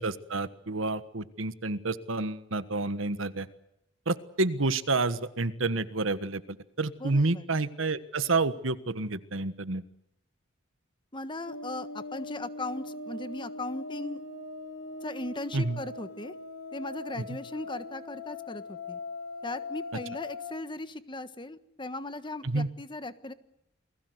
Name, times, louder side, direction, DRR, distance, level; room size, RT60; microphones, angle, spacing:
voice 1, 0.0-3.5 4.0-9.8 15.5-15.8 22.4-22.7, right 3 dB, 75° right, 13 dB, 1.5 m, -29 dB
voice 2, 7.0-7.5 11.1-14.2 15.0-16.3 16.7-19.0 19.4-23.3, left 2 dB, 25° left, 12 dB, 1.4 m, -38 dB
sound 1, 11.5-20.5, left 2 dB, 80° left, 2.9 m, -41 dB
29.0 x 20.5 x 8.1 m, 0.80 s
head